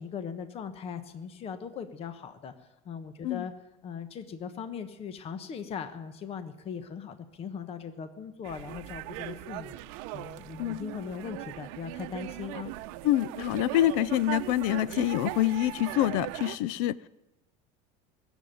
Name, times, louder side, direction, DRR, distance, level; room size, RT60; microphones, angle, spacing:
voice 1, 0.0-3.5 3.8-12.7, left 7 dB, 35° left, 10 dB, 1.2 m, -39 dB
sound 1, 8.4-16.6, right 16 dB, 70° right, 0.8 m, -39 dB
voice 2, 13.0-16.9, left 14 dB, 70° left, 20 dB, 0.5 m, -26 dB
20.0 x 7.3 x 9.3 m, 0.97 s
supercardioid pair, 130°, 17 cm